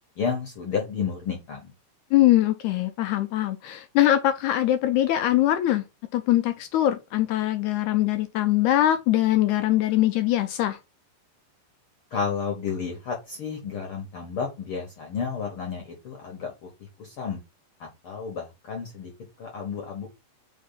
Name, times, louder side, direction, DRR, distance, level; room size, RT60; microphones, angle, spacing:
voice 1, 0.2-1.7 12.1-17.4 17.8-19.1 19.4-20.1, left 6 dB, 60° left, 1.5 m, -31 dB
voice 2, 2.1-5.8 6.1-10.8, left 13 dB, 85° left, 1.7 m, -22 dB
5.1 x 3.7 x 5.6 m
omnidirectional pair, 4.0 m